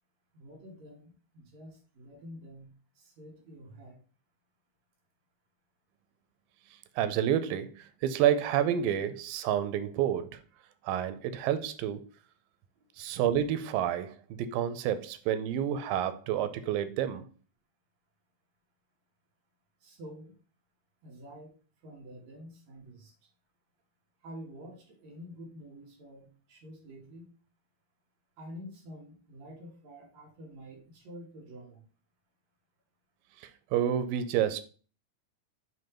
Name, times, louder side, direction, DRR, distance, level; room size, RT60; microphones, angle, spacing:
voice 1, 0.3-4.0 12.8-12.9 19.8-20.3 21.0-21.6 21.8-23.1 24.2-27.3 28.4-31.8, equal, 60° right, 2.5 m, -48 dB
voice 2, 7.0-10.4 10.8-12.0 13.0-17.3 33.4-34.6, right 10 dB, 90° right, 2.4 m, -29 dB
7.0 x 3.2 x 5.6 m
omnidirectional pair, 3.9 m